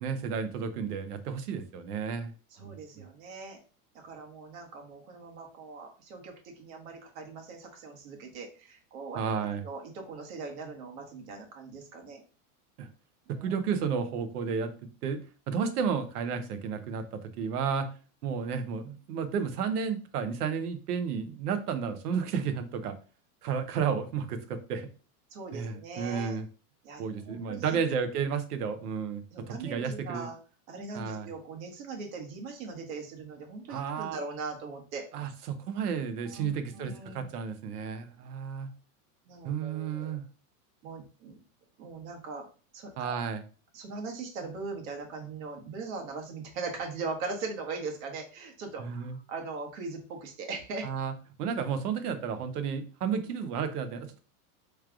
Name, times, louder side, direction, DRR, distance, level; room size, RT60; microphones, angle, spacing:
voice 1, 0.0-2.3 2.6-3.0 9.1-9.6 12.8-12.9 13.3-14.7 15.0-15.2 15.5-17.9 18.2-23.0 23.4-24.9 25.5-26.5 27.0-29.2 29.5-30.3 30.9-31.3 33.7-34.2 35.1-38.7 39.4-40.2 43.0-43.4 48.8-49.2 50.8-51.1 51.4-54.2, right 6 dB, 80° right, 9 dB, 0.9 m, -32 dB
voice 2, 2.5-3.6 4.0-9.2 9.6-12.2 13.3-13.5 25.3-26.4 26.8-27.8 29.3-30.4 30.7-35.1 36.3-37.3 39.3-40.2 40.8-41.4 41.8-42.4 42.7-43.1 43.7-50.9, right 4 dB, 60° right, 2 dB, 1.3 m, -40 dB
4.7 x 3.3 x 2.4 m, 0.36 s
supercardioid pair, 160°, 45 cm